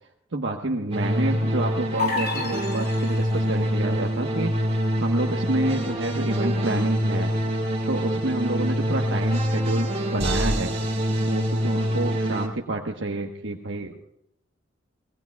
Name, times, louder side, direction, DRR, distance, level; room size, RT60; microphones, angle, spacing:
voice 1, 0.3-4.5 5.0-7.3 7.8-10.7 11.3-14.0, right 2 dB, 85° right, 0 dB, 1.2 m, -28 dB
sound 1, 0.9-12.5, equal, 35° right, 2.6 m, -25 dB
sound 2, 2.0-3.6, left 4 dB, 55° left, 2.7 m, -30 dB
25.5 x 19.5 x 2.3 m, 0.79 s
head